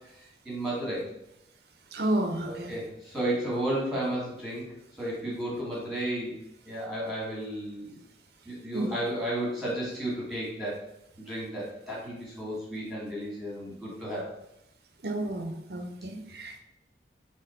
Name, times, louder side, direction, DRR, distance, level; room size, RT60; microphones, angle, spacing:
voice 1, 0.4-1.1 2.4-4.6 5.0-6.3 6.6-8.0 8.4-10.8 11.2-14.3, right 1 dB, ahead, -6 dB, 1.5 m, -33 dB
voice 2, 1.9-2.7 8.7-8.9 15.0-16.6, right 1 dB, 65° right, 4 dB, 0.7 m, -31 dB
4.3 x 2.9 x 4.2 m, 0.83 s
head